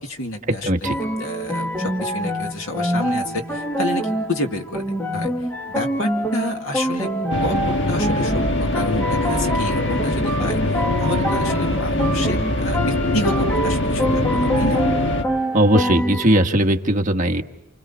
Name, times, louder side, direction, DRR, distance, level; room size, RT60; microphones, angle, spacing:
voice 1, 0.0-5.3 5.7-7.1 7.4-14.8, left 1 dB, 75° left, 4 dB, 2.3 m, -29 dB
voice 2, 0.6-1.0 15.5-17.4, right 1 dB, 35° right, 4 dB, 1.4 m, -18 dB
sound 1, 0.8-16.5, equal, 10° left, 1.5 m, -25 dB
sound 2, 7.3-15.2, left 1 dB, 55° left, 1.5 m, -22 dB
29.0 x 27.5 x 4.4 m, 0.92 s
head